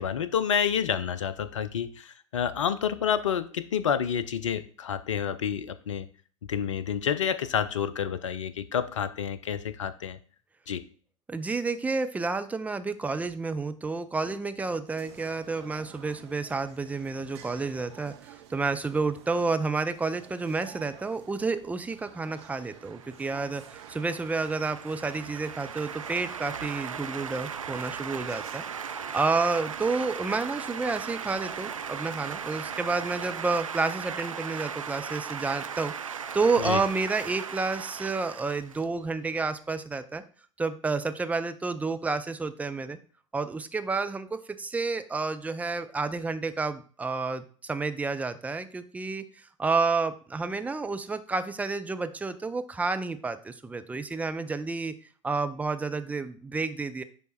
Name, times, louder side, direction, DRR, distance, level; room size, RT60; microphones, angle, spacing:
voice 1, 0.0-6.1 6.5-10.2 10.7-10.8 36.6-36.8, left 8 dB, 70° left, 14 dB, 0.6 m, -29 dB
voice 2, 11.3-28.6 28.9-40.2 40.6-43.0 43.3-54.9 55.2-57.0, right 4 dB, 10° right, 9 dB, 0.5 m, -30 dB
sound 1, 14.9-33.7, right 10 dB, 55° right, 0.9 m, -51 dB
sound 2, 22.7-39.4, right 7 dB, 80° right, 0.4 m, -38 dB
10.0 x 3.6 x 4.1 m, 0.42 s
figure-of-eight pair, 80°, 17 cm